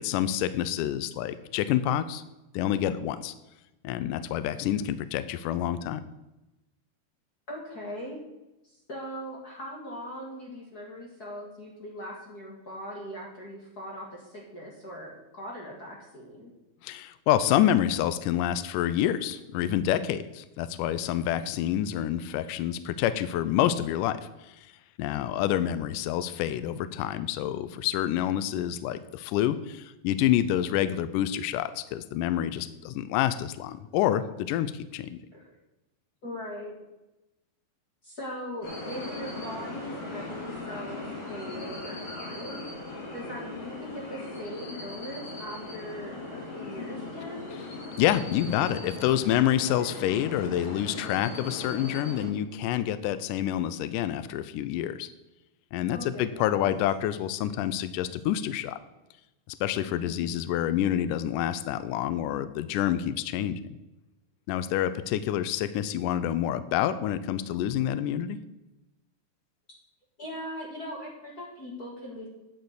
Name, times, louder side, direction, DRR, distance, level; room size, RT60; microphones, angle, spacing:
voice 1, 0.0-2.2 2.5-3.3 3.8-6.0 16.8-24.5 25.0-35.2 48.0-55.1 55.7-58.8 59.5-63.6 64.5-68.4, left 11 dB, 85° left, 13 dB, 1.8 m, -27 dB
voice 2, 7.5-8.2 8.6-16.5 35.3-35.5 36.2-36.7 38.0-41.0 41.3-47.6 55.9-56.7 59.9-60.3 70.2-72.3, equal, 40° left, -3 dB, 1.4 m, -40 dB
sound 1, 38.6-52.3, left 2 dB, 60° left, 4.9 m, -39 dB
9.3 x 6.7 x 8.0 m, 0.98 s
omnidirectional pair, 4.4 m